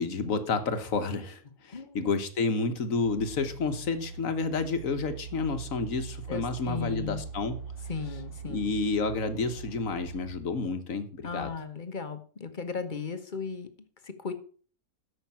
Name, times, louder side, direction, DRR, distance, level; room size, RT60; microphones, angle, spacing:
voice 1, 0.0-7.6 8.5-11.5, left 4 dB, 60° left, 9 dB, 1.5 m, -30 dB
voice 2, 1.7-2.1 6.3-7.2 7.9-8.7 11.2-13.7 14.0-14.3, left 5 dB, 35° left, 9 dB, 1.2 m, -36 dB
sound 1, 3.0-10.3, right 5 dB, 50° right, 2.8 m, -42 dB
13.5 x 5.9 x 5.8 m, 0.42 s
omnidirectional pair, 1.6 m